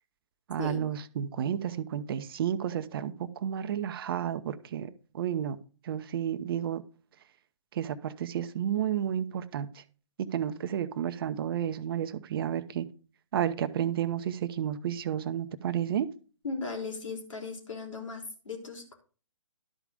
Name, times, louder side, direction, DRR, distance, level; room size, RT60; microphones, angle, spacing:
voice 1, 0.5-5.6 5.8-6.8 7.7-9.8 10.3-12.9 13.3-16.1, right 9 dB, 45° right, 12 dB, 0.8 m, -31 dB
voice 2, 16.4-18.9, left 4 dB, 70° left, 3 dB, 3.8 m, -37 dB
12.0 x 5.0 x 5.1 m, 0.37 s
figure-of-eight pair, 130°, 17 cm